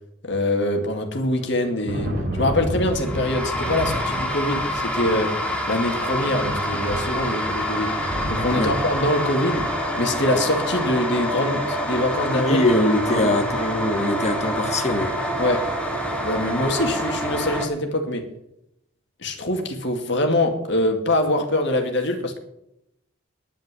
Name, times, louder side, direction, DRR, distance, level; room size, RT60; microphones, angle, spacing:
voice 1, 0.2-5.4 5.7-8.0 8.3-9.7 10.0-12.6 13.1-13.4 15.4-15.7 16.2-18.3 19.2-22.4, left 1 dB, 55° left, 4 dB, 2.3 m, -24 dB
Thunder, 1.2-10.7, equal, 45° right, 4.3 m, -32 dB
sound 1, 2.9-17.7, equal, 5° left, 1.9 m, -27 dB
voice 2, 12.3-15.2, left 1 dB, 30° left, 6 dB, 1.5 m, -22 dB
10.5 x 9.2 x 7.5 m, 0.80 s
head